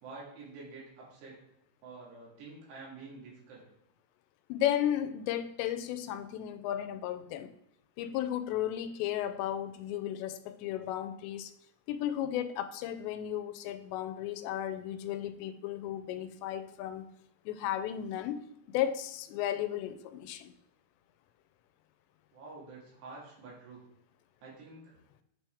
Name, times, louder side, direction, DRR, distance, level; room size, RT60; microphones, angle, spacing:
voice 1, 0.0-1.4 1.8-3.7 22.3-23.8 24.4-25.0, right 3 dB, 75° right, -4 dB, 4.2 m, -48 dB
voice 2, 4.5-7.5 8.0-11.5 11.9-17.1 17.5-18.5 18.7-20.5, left 11 dB, 85° left, 10 dB, 2.8 m, -34 dB
8.3 x 4.5 x 3.4 m, 0.80 s
omnidirectional pair, 5.0 m